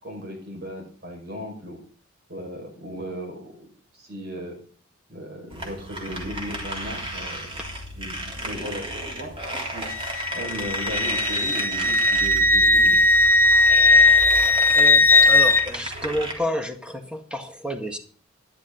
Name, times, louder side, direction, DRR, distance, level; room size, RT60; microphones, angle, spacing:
voice 1, 0.0-1.8 2.3-3.7 3.9-4.6 5.1-7.6 8.0-9.9 10.3-13.0, equal, 50° right, 3 dB, 5.6 m, -36 dB
sound 1, 5.5-16.3, right 1 dB, 25° right, 3.5 m, -33 dB
Wind instrument woodwind instrument, 9.9-15.6, left 2 dB, 10° left, 0.7 m, -18 dB
voice 2, 14.7-18.0, equal, 5° right, 5 dB, 1.8 m, -30 dB
12.5 x 12.0 x 3.9 m, 0.42 s
head